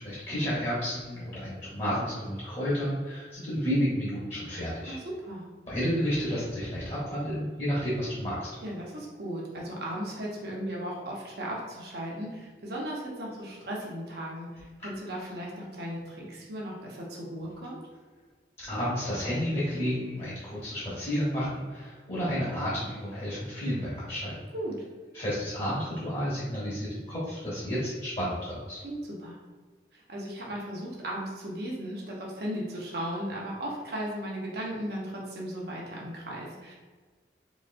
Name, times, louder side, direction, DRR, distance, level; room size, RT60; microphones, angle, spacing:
voice 1, 0.0-5.0 5.7-8.5 18.6-24.3 25.1-28.8, equal, 35° left, -8 dB, 1.0 m, -31 dB
voice 2, 4.9-5.5 8.6-17.8 24.5-24.7 28.8-29.4 29.9-36.8, equal, 65° right, -3 dB, 0.9 m, -36 dB
4.1 x 3.1 x 2.5 m, 1.4 s
head